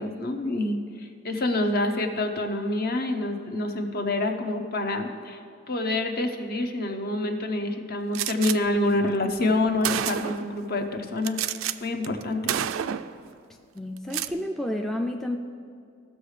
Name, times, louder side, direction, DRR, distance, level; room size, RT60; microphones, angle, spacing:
voice 1, 0.0-5.4 5.7-11.4 11.8-12.6, left 2 dB, 50° left, 5 dB, 0.8 m, -27 dB
Gunshot gunfire, 8.1-8.6 9.4-9.5 9.8-10.5 11.2-11.8 12.0-12.2 12.5-13.2 14.0-14.3, right 10 dB, 75° right, 0.3 m, -29 dB
voice 2, 13.7-15.4, left 1 dB, ahead, 2 dB, 0.4 m, -30 dB
16.0 x 6.3 x 3.3 m, 2.3 s
head